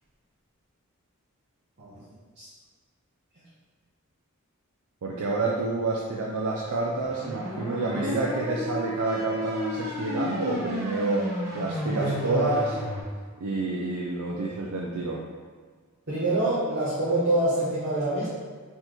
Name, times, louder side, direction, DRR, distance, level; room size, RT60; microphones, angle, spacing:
voice 1, 5.0-12.8 13.4-15.3, right 3 dB, 80° right, -2 dB, 0.5 m, -29 dB
sound 1, 7.0-13.0, left 1 dB, 10° right, 1.0 m, -32 dB
voice 2, 7.9-8.2 12.0-12.5 16.1-18.3, right 1 dB, 55° right, -11 dB, 1.1 m, -26 dB
4.4 x 3.7 x 3.0 m, 1.6 s
head